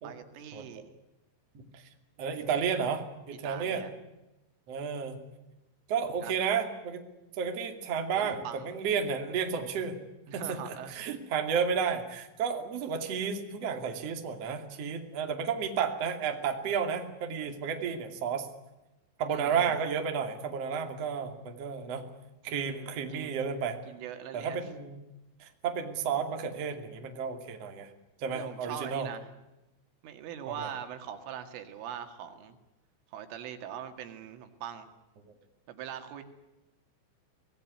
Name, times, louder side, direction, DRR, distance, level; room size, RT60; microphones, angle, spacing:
voice 1, 0.0-0.9 3.4-3.9 6.1-6.4 8.1-8.7 10.3-11.1 19.3-19.8 22.5-23.4 23.9-24.7 28.3-29.3 30.0-32.6 33.1-34.9 35.7-36.2, right 9 dB, 80° right, 8 dB, 4.5 m, -42 dB
voice 2, 2.2-3.8 4.7-5.2 5.9-7.0 7.4-10.0 10.3-18.5 19.2-22.0 22.4-23.8 24.3-25.0 25.4-27.9 28.2-29.1 30.5-30.7 35.3-35.4, right 6 dB, 40° right, 5 dB, 2.8 m, -32 dB
24.5 x 19.0 x 9.6 m, 0.99 s
omnidirectional pair, 5.7 m